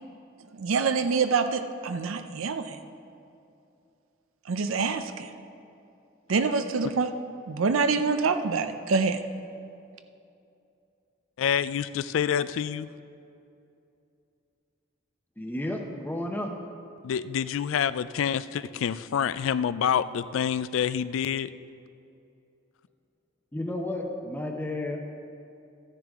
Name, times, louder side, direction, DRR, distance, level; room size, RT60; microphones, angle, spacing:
voice 1, 0.5-2.8 4.5-5.3 6.3-7.1 7.5-9.2, right 4 dB, 85° right, 9 dB, 0.5 m, -26 dB
voice 2, 11.4-12.9 17.0-21.5, left 8 dB, 75° left, 16 dB, 0.3 m, -27 dB
voice 3, 15.4-16.5 23.5-25.0, left 1 dB, 10° left, 2 dB, 0.7 m, -32 dB
13.5 x 10.0 x 3.5 m, 2.6 s
head